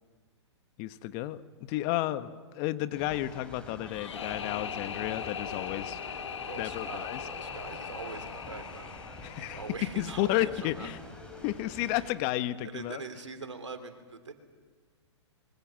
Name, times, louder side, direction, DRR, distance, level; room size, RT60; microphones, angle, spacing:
voice 1, 0.8-6.0 6.6-7.2 9.2-9.6 10.0-11.0 11.4-13.0, left 15 dB, 40° left, 11 dB, 1.3 m, -32 dB
sound 1, 2.9-12.1, left 1 dB, 5° left, 6.0 m, -47 dB
sound 2, 3.8-10.8, left 7 dB, 75° left, 1.1 m, -40 dB
voice 2, 6.2-9.0 9.4-10.9 11.9-12.0 12.6-14.3, right 4 dB, 85° right, 8 dB, 3.2 m, -43 dB
25.5 x 23.5 x 7.6 m, 1.5 s
hypercardioid pair, 120°, 15 cm